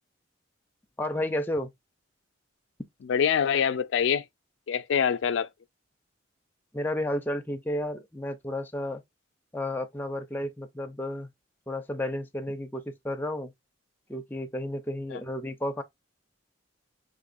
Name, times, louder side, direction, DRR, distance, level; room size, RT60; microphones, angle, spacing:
voice 1, 1.0-1.7 6.7-9.0 9.5-11.3 11.7-13.5 14.1-15.8, left 1 dB, 10° left, 0.5 m, -32 dB
voice 2, 3.1-4.2 4.7-5.5 15.1-15.2, left 7 dB, 70° left, 0.4 m, -25 dB
4.0 x 2.9 x 2.4 m
head